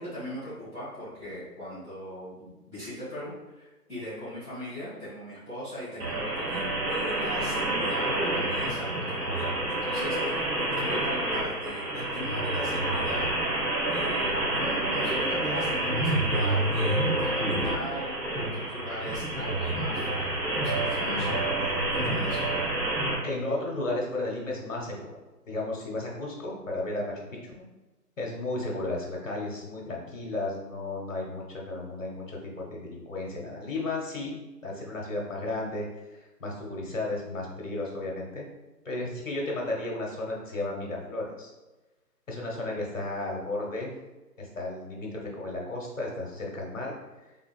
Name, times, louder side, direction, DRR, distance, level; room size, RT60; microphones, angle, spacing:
voice 1, 0.0-13.3 13.5-22.4, equal, 5° right, -23 dB, 0.9 m, -40 dB
sound 1, 6.0-23.1, right 1 dB, 65° right, 1.2 m, -28 dB
voice 2, 23.2-25.2 25.4-27.6 28.2-38.5 38.8-41.5 42.3-43.9 44.4-47.0, left 2 dB, 50° left, -1 dB, 1.1 m, -34 dB
3.7 x 3.5 x 2.4 m, 1.1 s
figure-of-eight pair, 160°, 48 cm